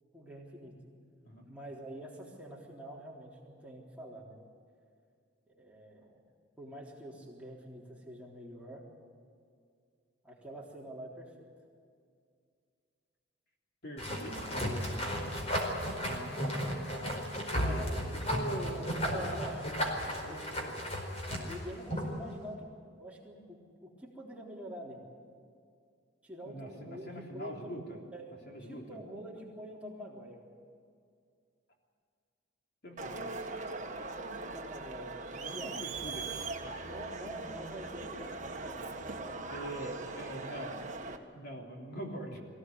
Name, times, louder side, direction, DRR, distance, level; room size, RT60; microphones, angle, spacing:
voice 1, 0.1-0.7 1.5-4.4 5.5-6.2 6.6-8.8 10.2-11.3 17.6-18.0 18.6-20.7 21.5-22.7 23.0-25.0 26.2-27.7 28.1-30.4 33.2-33.3 34.2-35.2 35.5-36.1 36.8-39.7, right 1 dB, 5° right, -4 dB, 3.8 m, -46 dB
voice 2, 13.8-14.7 15.5-16.5 17.5-19.4 20.2-20.9 26.4-28.1 28.5-29.0 32.8-33.3 35.3-36.3 36.6-36.9 39.5-40.9 41.3-42.4, right 1 dB, 55° left, 0 dB, 3.5 m, -44 dB
sound 1, 14.0-22.2, equal, 35° left, 4.7 m, -34 dB
Crowd, 33.0-41.2, right 3 dB, 40° right, 1.6 m, -41 dB
23.5 x 16.5 x 9.6 m, 2.2 s
head